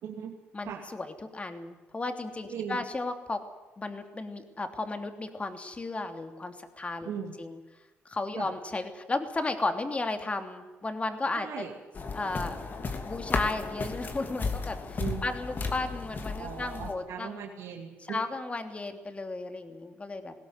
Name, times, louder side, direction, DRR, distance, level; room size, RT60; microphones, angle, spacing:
voice 1, 0.0-0.4 0.6-0.8 2.5-2.8 7.1-7.3 8.4-8.5 11.3-11.7 15.0-15.3 16.4-18.2, right 7 dB, 75° right, 0 dB, 2.8 m, -38 dB
voice 2, 0.5-3.4 3.8-7.1 7.4-7.6 8.0-11.7 12.1-12.6 13.0-17.3 18.0-20.3, left 2 dB, 25° left, 7 dB, 3.0 m, -34 dB
sound 1, 11.9-16.9, left 4 dB, 45° left, 3.0 m, -34 dB
20.0 x 17.0 x 9.7 m, 1.2 s
cardioid pair, 75°, 5 cm